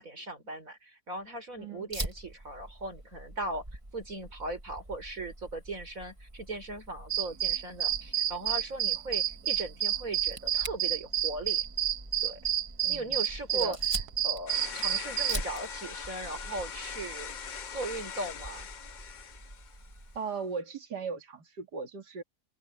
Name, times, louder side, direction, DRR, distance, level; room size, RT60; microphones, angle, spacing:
voice 1, 0.0-3.6 3.9-11.6 12.2-12.4 12.9-13.8 14.2-18.7, right 2 dB, 55° right, 5.1 m, -38 dB
Fire, 1.9-20.2, right 1 dB, 20° right, 2.8 m, -44 dB
sound 1, 7.1-15.3, right 10 dB, 75° right, 1.3 m, -29 dB
sound 2, 14.5-20.0, left 7 dB, 50° left, 0.5 m, -42 dB
voice 2, 20.1-22.2, right 5 dB, 90° right, 2.8 m, -37 dB
open air
omnidirectional pair, 1.7 m